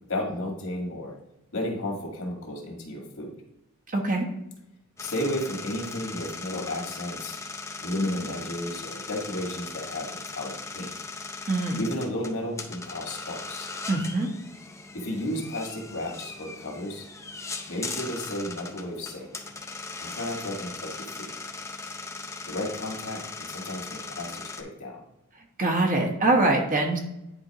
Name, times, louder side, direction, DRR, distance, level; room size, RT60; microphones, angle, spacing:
voice 1, 0.1-1.2 1.5-3.4 5.0-7.4 7.8-10.9 11.8-13.7 14.9-17.1 17.7-19.3 20.0-21.3 22.5-25.0, left 1 dB, 70° left, 0 dB, 1.9 m, -33 dB
voice 2, 3.9-4.3 11.5-11.8 13.9-14.3 25.6-27.0, right 2 dB, 40° right, 2 dB, 1.1 m, -23 dB
sound 1, 5.0-24.6, left 3 dB, 15° left, 0.6 m, -39 dB
9.9 x 4.3 x 2.9 m, 0.86 s
head